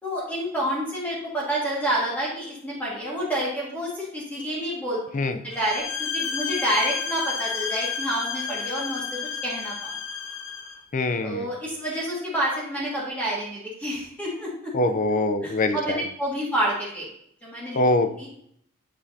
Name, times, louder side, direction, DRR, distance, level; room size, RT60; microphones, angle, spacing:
voice 1, 0.0-9.9 11.2-14.7 15.4-17.1 17.4-17.8 18.2-18.3, right 1 dB, 10° left, -6 dB, 1.8 m, -29 dB
sound 1, 5.5-10.8, left 6 dB, 70° left, 0.8 m, -31 dB
voice 2, 10.9-11.5 14.7-16.0 17.7-18.3, left 2 dB, 40° left, 9 dB, 0.5 m, -24 dB
8.6 x 5.5 x 2.7 m, 0.68 s
head